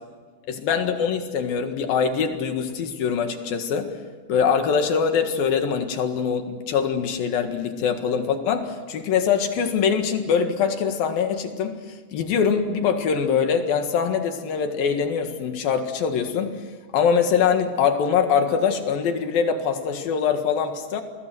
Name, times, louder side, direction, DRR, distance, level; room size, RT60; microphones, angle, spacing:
voice 1, 0.5-4.0 4.3-16.7 16.9-21.0, left 6 dB, 70° left, 6 dB, 3.5 m, -23 dB
29.5 x 21.0 x 7.9 m, 1.5 s
omnidirectional pair, 4.5 m